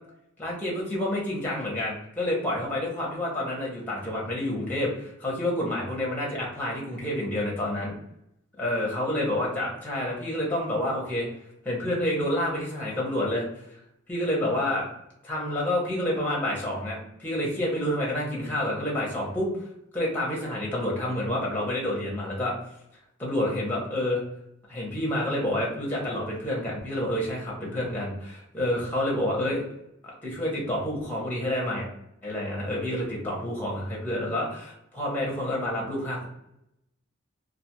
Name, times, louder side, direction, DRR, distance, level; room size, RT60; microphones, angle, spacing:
voice 1, 0.4-7.9 8.6-11.3 11.6-13.5 14.1-14.8 15.2-19.5 19.9-22.5 23.2-24.2 24.7-29.7 30.2-31.9 32.2-36.3, left 1 dB, 10° left, -3 dB, 0.7 m, -28 dB
2.4 x 2.3 x 2.9 m, 0.81 s
head